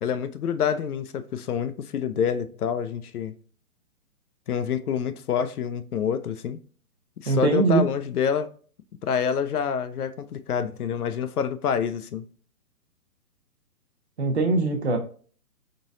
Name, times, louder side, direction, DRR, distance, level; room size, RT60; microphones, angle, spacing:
voice 1, 0.0-3.3 4.5-6.6 7.2-8.5 9.0-12.3, left 7 dB, 75° left, 0.6 m, -27 dB
voice 2, 7.3-7.8 14.2-15.0, right 4 dB, 45° right, 0.9 m, -22 dB
3.9 x 3.6 x 2.5 m
hypercardioid pair, 180°, 45 cm